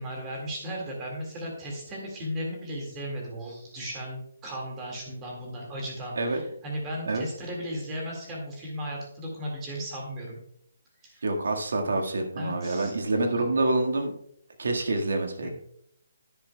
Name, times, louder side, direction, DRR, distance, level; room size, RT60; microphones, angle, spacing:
voice 1, 0.0-10.4 11.0-11.2 12.4-12.9 15.4-15.5, equal, 15° right, -2 dB, 1.9 m, -36 dB
voice 2, 11.2-14.1 14.6-15.5, right 2 dB, 75° right, 4 dB, 1.6 m, -27 dB
10.0 x 10.0 x 2.2 m, 0.69 s
hypercardioid pair, 175°, 0 cm